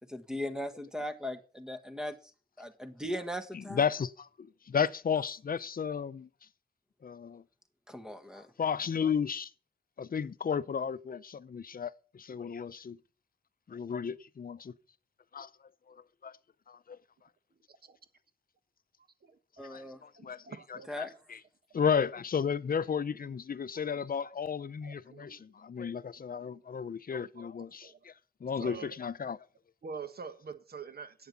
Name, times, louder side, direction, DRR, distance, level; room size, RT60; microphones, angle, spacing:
voice 1, 0.0-2.2 2.6-3.8 7.9-8.5 19.6-20.0 20.9-21.1, equal, 5° right, 1.5 m, -38 dB
voice 2, 3.5-6.3 7.0-7.4 8.6-9.5 10.0-13.0 13.7-14.7 15.3-15.5 15.9-16.0 16.2-16.3 16.7-17.0 19.6-20.4 20.7-21.4 21.7-28.1 28.4-29.4, left 7 dB, 55° left, 0.6 m, -33 dB
voice 3, 19.9-21.1 23.2-23.4 23.8-24.1 24.8-25.4 26.1-26.4 27.7-28.0 28.6-29.0 29.8-31.3, right 5 dB, 65° right, 1.5 m, -46 dB
11.5 x 8.4 x 7.0 m
wide cardioid pair, 100°, 18 cm